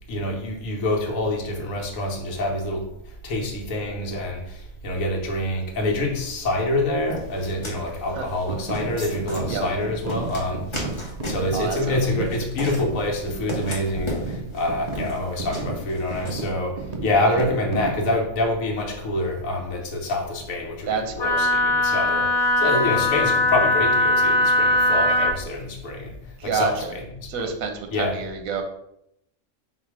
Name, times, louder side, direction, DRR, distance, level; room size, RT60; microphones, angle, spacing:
voice 1, 0.1-2.9 3.2-10.8 11.2-27.5 27.9-28.2, left 1 dB, 75° left, 1 dB, 1.3 m, -26 dB
sound 1, 7.1-16.3, equal, 25° left, 0.9 m, -35 dB
sound 2, 8.5-18.1, right 2 dB, 55° right, 0.4 m, -34 dB
voice 2, 11.5-12.2 17.2-17.5 20.9-21.4 26.4-26.9 27.3-28.6, right 6 dB, 85° right, 5 dB, 1.1 m, -29 dB
Wind instrument woodwind instrument, 21.2-25.4, left 2 dB, 60° left, 0.7 m, -20 dB
3.9 x 2.7 x 4.8 m, 0.77 s
omnidirectional pair, 1.4 m